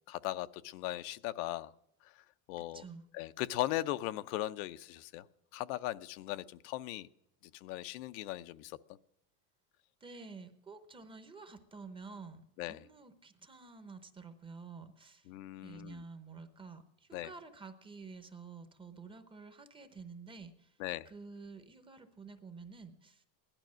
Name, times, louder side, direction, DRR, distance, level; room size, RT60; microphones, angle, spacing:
voice 1, 0.1-1.7 2.5-2.8 3.1-5.2 5.5-7.1 7.6-8.8 12.6-12.8 15.3-16.0 17.1-17.3 20.8-21.1, left 15 dB, 65° left, 12 dB, 0.7 m, -38 dB
voice 2, 2.7-3.0 10.0-12.4 12.7-15.3 15.6-20.8 21.0-23.3, right 4 dB, 10° right, 8 dB, 0.8 m, -50 dB
16.5 x 12.0 x 6.2 m, 0.79 s
cardioid pair, 165°, 46 cm